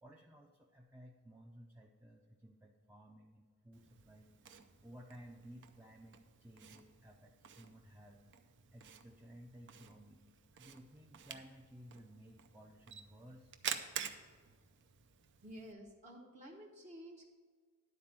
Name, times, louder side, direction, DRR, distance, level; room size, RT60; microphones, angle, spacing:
voice 1, 0.0-8.3 8.7-10.2 10.5-13.6, equal, 10° right, 0 dB, 0.5 m, -57 dB
Camera, 3.7-15.7, right 8 dB, 55° right, 0.6 m, -49 dB
voice 2, 15.4-17.3, equal, 35° right, -1 dB, 0.9 m, -52 dB
11.0 x 4.3 x 7.3 m, 1.5 s
head